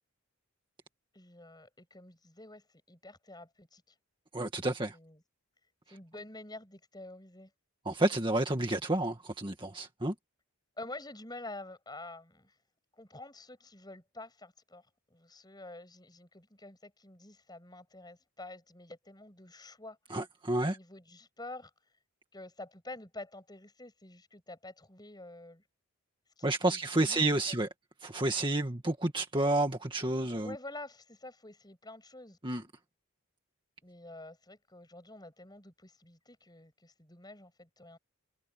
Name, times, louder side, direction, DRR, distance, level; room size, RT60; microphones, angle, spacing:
voice 1, 1.1-3.8 4.9-5.2 5.9-7.5 10.8-12.5 13.0-14.8 15.1-20.0 20.7-21.7 22.3-25.6 26.4-27.6 30.4-32.4 33.8-38.0, left 2 dB, 20° left, 7.0 m, -48 dB
voice 2, 4.3-5.0 7.9-10.1 20.1-20.8 26.4-27.7 28.0-30.6 32.4-32.6, right 2 dB, 20° right, 2.0 m, -30 dB
head